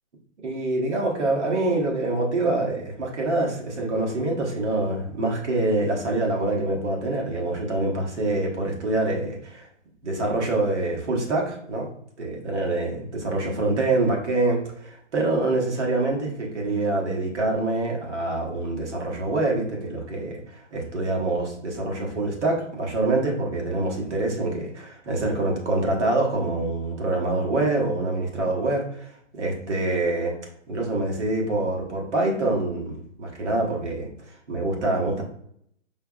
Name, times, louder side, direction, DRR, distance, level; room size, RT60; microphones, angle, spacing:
voice 1, 0.4-9.7 10.0-11.9 12.2-30.4 30.7-35.2, right 2 dB, 60° right, -1 dB, 1.2 m, -25 dB
5.5 x 2.0 x 2.3 m, 0.69 s
hypercardioid pair, 175°, 38 cm